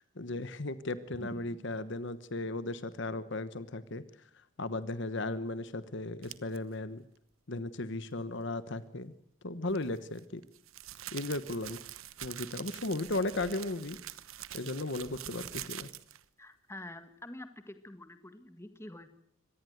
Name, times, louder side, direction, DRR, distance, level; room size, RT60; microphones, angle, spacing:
voice 1, 0.0-4.0 4.6-7.0 7.5-9.1 9.4-10.4 11.1-11.8 12.2-14.0 14.5-15.9, left 2 dB, 55° left, 14 dB, 1.1 m, -36 dB
sound 1, 6.2-6.6 9.7-16.2, right 12 dB, 70° right, 1.1 m, -45 dB
voice 2, 16.4-19.1, left 1 dB, 10° left, 9 dB, 1.7 m, -46 dB
25.0 x 18.5 x 7.9 m, 0.68 s
head